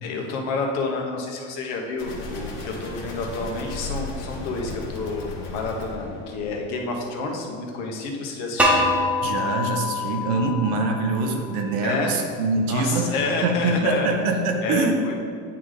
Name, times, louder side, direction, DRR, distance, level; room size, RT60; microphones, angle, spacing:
voice 1, 0.0-8.8 11.8-12.2 12.6-14.1 14.6-15.2, left 3 dB, 80° left, 1 dB, 1.1 m, -29 dB
sound 1, 2.0-6.9, left 2 dB, 55° left, 1.3 m, -35 dB
sound 2, 8.6-11.5, left 2 dB, 5° right, 0.6 m, -24 dB
voice 2, 9.2-15.1, right 3 dB, 90° right, 3 dB, 1.0 m, -24 dB
9.7 x 4.0 x 3.2 m, 2.2 s
cardioid pair, 155°, 30 cm